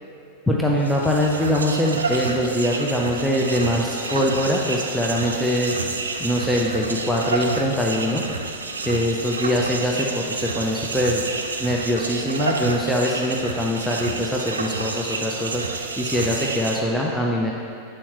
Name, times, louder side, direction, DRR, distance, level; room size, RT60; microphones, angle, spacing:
voice 1, 0.5-5.7 6.2-8.2 8.9-11.2 11.6-17.5, equal, 5° left, -3 dB, 0.5 m, -23 dB
sound 1, 0.7-16.8, right 3 dB, 90° right, 0.3 m, -29 dB
7.1 x 4.3 x 3.1 m, 2.6 s
hypercardioid pair, 95°, 0 cm